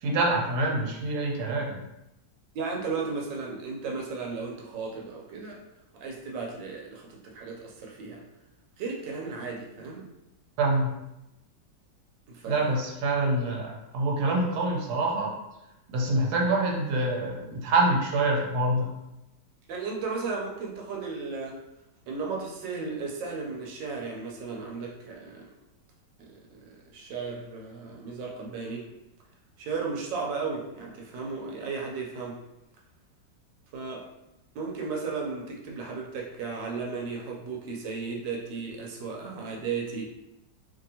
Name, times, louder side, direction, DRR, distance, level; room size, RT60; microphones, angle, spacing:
voice 1, 0.0-1.8 10.6-10.9 12.5-15.3 15.9-18.9, right 2 dB, 65° right, -1 dB, 1.1 m, -26 dB
voice 2, 2.5-5.6 5.9-8.2 8.8-10.1 12.3-12.6 19.7-21.6 22.1-25.5 26.2-26.7 26.9-28.9 29.6-32.4 33.7-34.1 34.5-40.0, right 4 dB, 85° right, -1 dB, 1.3 m, -35 dB
2.8 x 2.7 x 2.7 m, 0.91 s
omnidirectional pair, 1.9 m